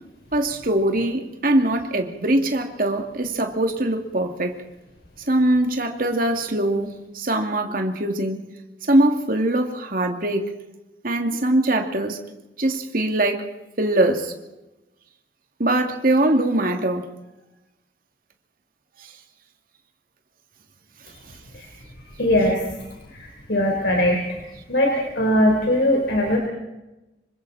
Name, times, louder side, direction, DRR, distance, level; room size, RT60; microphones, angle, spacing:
voice 1, 0.3-4.5 5.3-8.5 8.9-10.5 11.0-12.2 12.6-13.4 13.8-14.3 15.6-17.0, right 1 dB, 50° right, 4 dB, 2.7 m, -22 dB
voice 2, 22.2-22.9 23.1-24.2 24.7-26.4, left 1 dB, 65° left, 1 dB, 4.2 m, -20 dB
27.0 x 24.5 x 4.3 m, 0.99 s
head